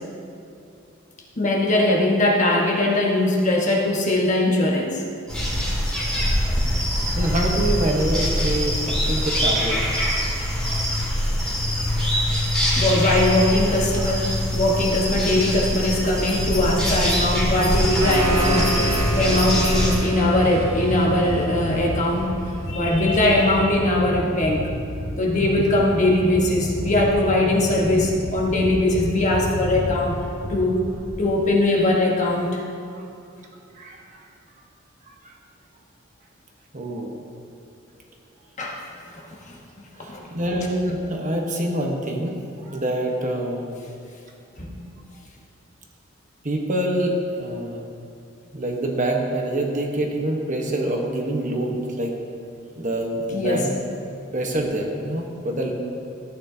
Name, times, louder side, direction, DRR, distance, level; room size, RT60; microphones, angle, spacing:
voice 1, 1.4-5.0 12.8-22.3 22.7-24.7 25.2-30.2 30.5-30.8 31.2-32.6 38.6-38.8 39.5-39.6 40.0-40.3 44.6-44.7 53.3-53.6, left 1 dB, 35° left, -1 dB, 1.3 m, -21 dB
sound 1, 5.3-19.9, equal, 5° left, 2.0 m, -23 dB
voice 2, 7.2-9.8 33.8-34.2 35.2-35.3 36.7-37.1 40.0-43.8 46.4-47.8 48.5-52.1 52.8-53.7 54.3-55.7, right 1 dB, 40° right, 0 dB, 1.1 m, -26 dB
sound 2, 16.4-31.2, equal, 80° left, 2.2 m, -30 dB
sound 3, 18.0-22.7, right 2 dB, 85° right, 1.1 m, -30 dB
14.0 x 9.2 x 2.8 m, 2.5 s
head